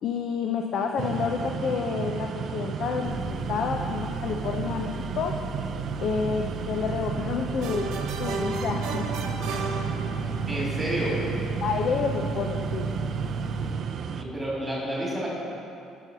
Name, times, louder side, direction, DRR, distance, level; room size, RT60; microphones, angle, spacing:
voice 1, 0.0-5.3 6.0-7.9 8.2-9.1 11.6-12.9, left 5 dB, 50° left, 3 dB, 0.5 m, -29 dB
sound 1, 1.0-14.2, right 7 dB, 40° right, 0.4 m, -33 dB
sound 2, 3.0-13.7, right 1 dB, 10° left, 1.6 m, -35 dB
sound 3, 7.6-10.6, right 3 dB, 70° right, 0.8 m, -34 dB
voice 2, 10.5-11.1 14.1-15.3, right 1 dB, 10° right, -6 dB, 2.7 m, -30 dB
10.5 x 5.8 x 6.1 m, 2.6 s
cardioid pair, 165°, 0 cm